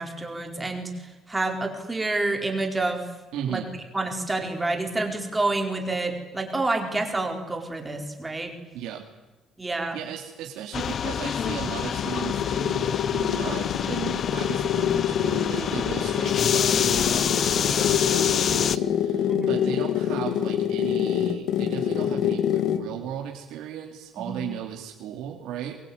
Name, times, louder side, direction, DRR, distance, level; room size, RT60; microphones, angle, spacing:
voice 1, 0.0-3.1 3.5-3.6 3.9-8.5 9.6-10.0 19.3-19.6 24.2-24.5, right 2 dB, 10° right, 3 dB, 4.4 m, -28 dB
voice 2, 3.3-3.7 8.7-9.0 9.9-25.8, right 9 dB, 75° right, 1 dB, 3.3 m, -36 dB
sound 1, 10.7-18.8, left 8 dB, 40° left, 0.8 m, -27 dB
sound 2, 11.2-22.9, left 9 dB, 65° left, 2.1 m, -26 dB
23.0 x 23.0 x 9.7 m, 1.1 s
cardioid pair, 160°, 0 cm